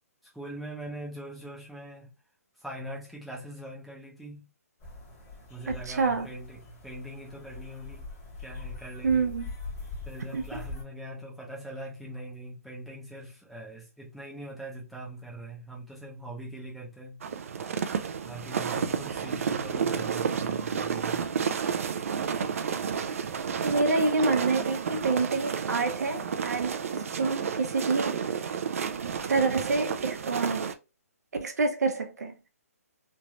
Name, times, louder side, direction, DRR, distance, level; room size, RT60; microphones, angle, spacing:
voice 1, 0.3-2.1 2.6-4.5 5.5-8.1 8.4-9.3 10.0-17.2 18.2-21.2, right 1 dB, ahead, 0.7 m, -42 dB
sound 1, 4.8-10.8, left 3 dB, 20° left, 1.0 m, -42 dB
voice 2, 5.7-6.3 9.0-9.5 10.3-10.6 23.6-28.2 29.0-30.7 31.4-32.3, right 3 dB, 80° right, 0.8 m, -27 dB
sound 2, 17.2-30.7, right 6 dB, 60° right, 0.4 m, -31 dB
3.1 x 2.9 x 2.4 m
hypercardioid pair, 165°, 9 cm